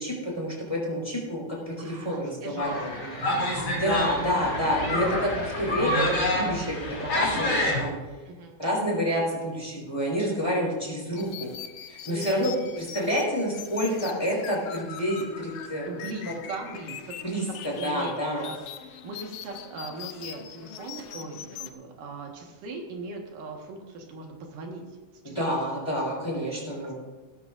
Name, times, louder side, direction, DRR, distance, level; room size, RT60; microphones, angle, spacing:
voice 1, 0.0-2.9 3.7-6.7 7.1-7.9 8.6-11.5 11.9-15.9 17.2-17.4 17.8-18.5 25.3-26.9, equal, 10° left, -4 dB, 4.6 m, -28 dB
voice 2, 1.8-3.8 4.8-5.7 8.3-8.6 12.1-12.8 15.8-17.1 17.5-18.2 18.4-24.8 25.2-25.4, right 3 dB, 80° right, 1 dB, 3.2 m, -40 dB
sound 1, 2.6-7.8, left 1 dB, 40° left, 3.7 m, -28 dB
sound 2, 3.5-8.0, right 1 dB, 35° right, 1.2 m, -42 dB
sound 3, 11.2-21.7, left 9 dB, 80° left, 1.3 m, -42 dB
18.0 x 13.5 x 2.6 m, 1.2 s
omnidirectional pair, 3.7 m